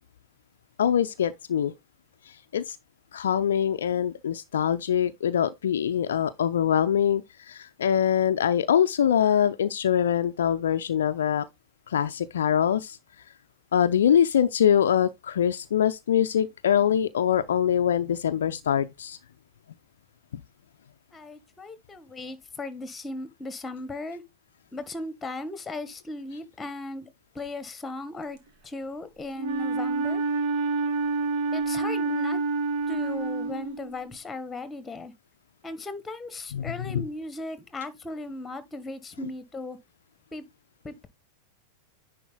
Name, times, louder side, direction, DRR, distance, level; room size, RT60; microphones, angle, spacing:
voice 1, 0.8-1.7 2.3-2.8 3.1-11.5 11.9-13.0 13.7-19.2 20.3-20.4 36.5-37.1, left 9 dB, 65° left, 0.5 m, -24 dB
voice 2, 21.1-24.2 24.7-27.1 27.3-28.4 28.6-30.2 31.5-32.4 32.9-35.1 35.6-39.8 40.3-40.4 40.8-41.1, left 2 dB, 15° left, 1.4 m, -37 dB
Wind instrument woodwind instrument, 29.4-34.1, right 3 dB, 50° right, 1.7 m, -28 dB
10.0 x 4.5 x 3.6 m
figure-of-eight pair, 90°, 0 cm